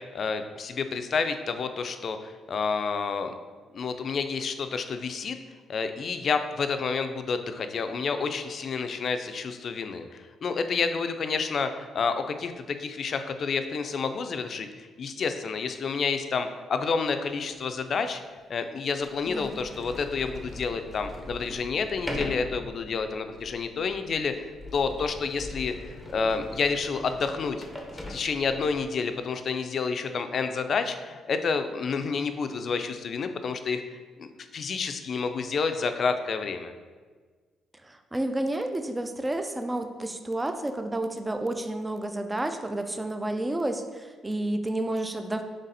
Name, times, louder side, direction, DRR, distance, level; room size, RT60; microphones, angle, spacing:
voice 1, 0.0-3.3 3.7-5.4 5.7-18.2 18.5-27.6 28.1-36.7, left 5 dB, 55° left, 8 dB, 0.4 m, -29 dB
Sliding door, 17.5-17.6 18.4-18.5 18.9-28.8, left 1 dB, 5° left, 0.7 m, -40 dB
voice 2, 19.3-19.6 37.8-45.4, right 1 dB, 15° right, 7 dB, 0.4 m, -30 dB
4.0 x 3.2 x 4.0 m, 1.5 s
cardioid pair, 90°, 0 cm